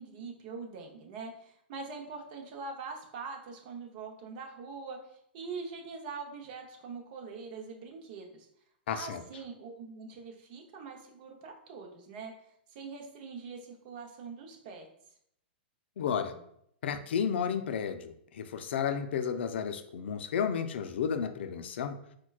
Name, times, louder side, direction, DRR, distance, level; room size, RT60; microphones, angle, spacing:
voice 1, 0.0-5.0 5.3-8.5 8.9-12.3 12.7-14.9, right 4 dB, 50° right, 2 dB, 0.7 m, -43 dB
voice 2, 8.9-9.2 16.0-16.4 16.8-22.0, left 7 dB, 75° left, 9 dB, 0.3 m, -32 dB
4.3 x 2.2 x 2.3 m, 0.71 s
hypercardioid pair, 150°, 6 cm